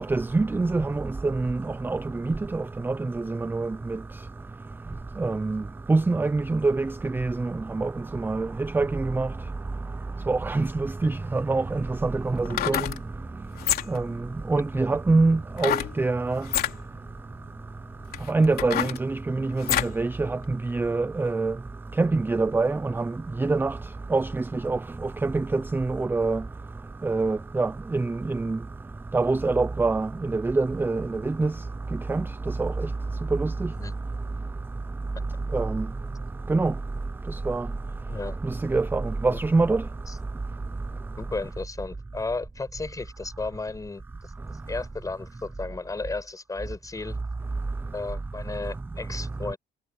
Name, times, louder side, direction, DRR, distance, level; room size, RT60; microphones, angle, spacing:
voice 1, 0.1-1.6 1.8-2.0 2.3-2.9 3.3-3.7 5.2-5.6 5.9-7.5 7.7-7.9 8.2-8.5 8.7-9.3 10.3-10.7 11.0-12.8 13.9-14.1 14.5-16.4 18.3-19.6 20.0-20.4 20.7-21.5 22.0-23.0 23.4-23.7 24.1-24.3 24.6-24.8 25.2-26.4 27.0-28.6 29.1-31.5 32.1-32.2 32.6-32.7 33.4-33.5 35.5-35.8 36.5-36.7 37.5-37.6 38.7-39.8, right 3 dB, 10° right, 0.6 m, -24 dB
sound 1, 11.2-11.3 12.4-13.0 13.5-14.1 15.6-15.9 16.4-16.7 17.5-17.6 18.1-20.0 20.4-20.5, left 11 dB, 65° left, 3.5 m, -27 dB
voice 2, 41.2-44.3 44.7-47.2 47.9-49.6, left 3 dB, 20° left, 7.7 m, -34 dB
cardioid pair, 110°, 17 cm